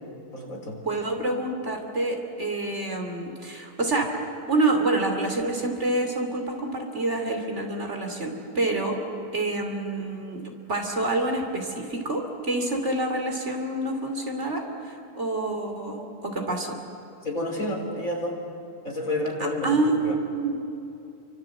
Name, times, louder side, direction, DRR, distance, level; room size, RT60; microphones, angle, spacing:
voice 1, 0.3-0.8 17.2-18.4 18.8-20.1, left 1 dB, 50° left, 0 dB, 4.6 m, -30 dB
voice 2, 0.8-9.0 9.3-16.8 19.4-19.9 20.2-20.6, right 2 dB, 40° right, 3 dB, 3.1 m, -27 dB
28.5 x 25.0 x 7.8 m, 2.8 s
omnidirectional pair, 1.8 m